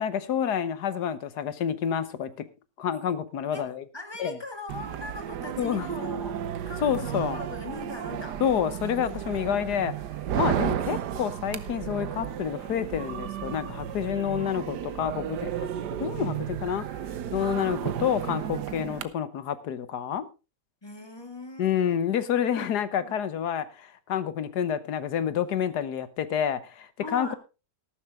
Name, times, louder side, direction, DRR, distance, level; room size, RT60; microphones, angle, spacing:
voice 1, 0.0-2.4 2.8-3.8 4.2-4.4 5.6-5.9 6.8-7.4 8.4-9.9 10.3-15.7 16.0-16.8 17.3-20.3 21.6-27.3, left 8 dB, 70° left, 1.5 m, -28 dB
voice 2, 3.5-8.4 10.4-11.0 20.8-22.0 22.5-23.2 27.0-27.3, left 2 dB, 15° left, 1.8 m, -40 dB
sound 1, 4.7-19.0, right 10 dB, 75° right, 1.4 m, -33 dB
13.5 x 12.5 x 3.6 m
omnidirectional pair, 1.8 m